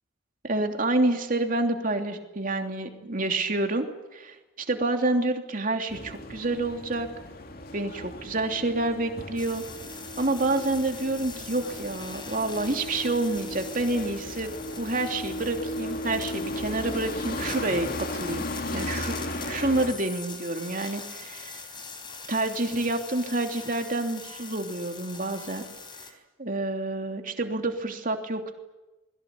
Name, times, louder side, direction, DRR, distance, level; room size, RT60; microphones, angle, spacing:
voice 1, 0.4-3.9 4.1-7.1 7.7-9.6 10.2-14.5 14.8-18.4 18.7-19.1 19.4-21.6 22.3-25.6 26.4-28.5, right 2 dB, 45° right, 4 dB, 3.0 m, -28 dB
sound 1, 5.9-19.9, left 1 dB, 50° left, 2.6 m, -36 dB
sound 2, 9.4-26.1, left 5 dB, 25° left, 3.9 m, -43 dB
28.5 x 22.0 x 8.5 m, 1.0 s
head